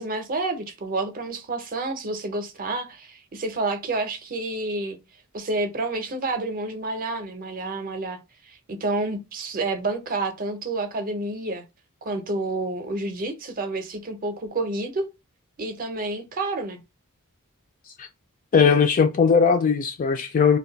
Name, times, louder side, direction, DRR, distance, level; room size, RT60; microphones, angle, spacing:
voice 1, 0.0-5.0 5.3-8.2 8.4-11.6 12.0-15.1 15.6-16.8, right 2 dB, 40° right, 0.6 m, -29 dB
voice 2, 18.5-20.6, left 6 dB, 40° left, 0.3 m, -19 dB
2.5 x 2.2 x 3.8 m
head